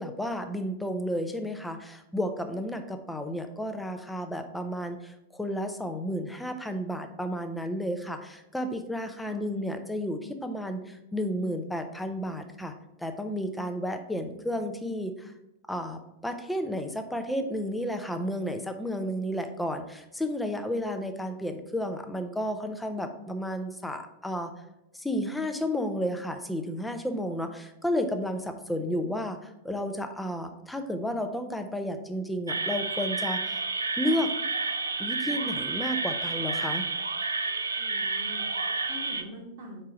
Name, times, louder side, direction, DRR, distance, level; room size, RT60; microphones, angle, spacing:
voice 1, 0.0-12.7 13.0-15.3 15.7-24.5 24.9-33.6 34.0-34.3 35.0-36.9, equal, 5° left, 6 dB, 0.6 m, -32 dB
voice 2, 9.2-9.6 37.8-39.9, left 1 dB, 55° right, -1 dB, 1.1 m, -45 dB
sound 1, 32.5-39.2, right 4 dB, 75° right, 0.4 m, -30 dB
4.7 x 4.3 x 5.1 m, 0.88 s
figure-of-eight pair, 95°, 0 cm